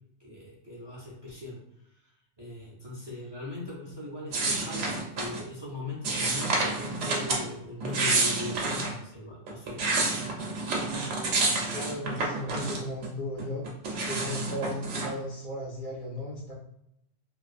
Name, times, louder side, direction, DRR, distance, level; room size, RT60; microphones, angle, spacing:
voice 1, 0.2-1.6 1.9-9.8, left 2 dB, 30° right, -4 dB, 0.5 m, -40 dB
sound 1, 4.3-5.4 6.0-7.4 7.8-8.9 9.5-13.1 13.4-15.1, right 3 dB, 85° right, 1.0 m, -29 dB
voice 2, 11.7-13.6 14.1-16.5, left 1 dB, 55° left, -3 dB, 0.7 m, -35 dB
2.6 x 2.4 x 2.4 m, 0.79 s
omnidirectional pair, 1.2 m